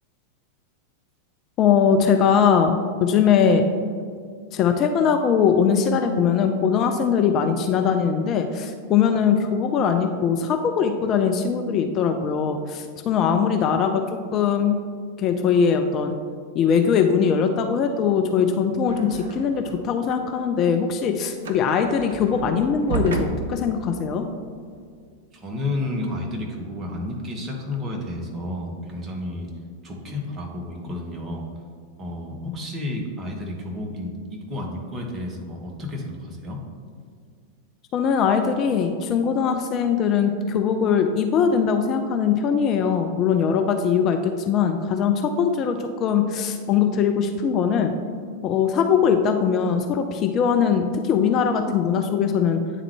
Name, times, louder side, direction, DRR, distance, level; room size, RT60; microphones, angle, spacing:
voice 1, 1.6-3.7 4.5-14.8 15.2-16.2 16.6-24.3 37.9-47.9 48.4-52.6, left 7 dB, 35° left, 5 dB, 0.3 m, -21 dB
sound 1, 18.9-20.0 20.3-24.9, right 4 dB, 65° right, 0.5 m, -32 dB
voice 2, 25.4-29.5 29.8-31.5 32.0-36.6, left 1 dB, 25° right, 0 dB, 1.1 m, -31 dB
9.1 x 3.6 x 3.4 m, 2.1 s
figure-of-eight pair, 90°, 0 cm